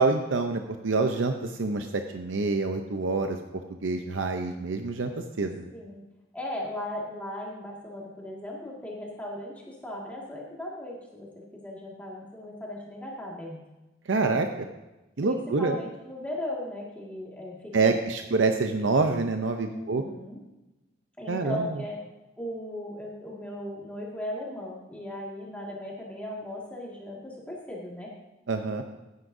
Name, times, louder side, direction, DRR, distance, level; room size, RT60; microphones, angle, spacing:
voice 1, 0.0-3.4 3.8-5.1 5.4-5.7 14.1-14.7 15.2-15.8 17.7-20.0 21.3-21.7 28.5-28.8, right 3 dB, 90° right, 5 dB, 0.6 m, -26 dB
voice 2, 5.7-6.0 6.3-13.6 15.2-18.0 19.7-20.4 21.2-22.0 22.4-28.1, left 1 dB, 10° left, -4 dB, 1.9 m, -37 dB
14.5 x 9.7 x 2.7 m, 1.0 s
head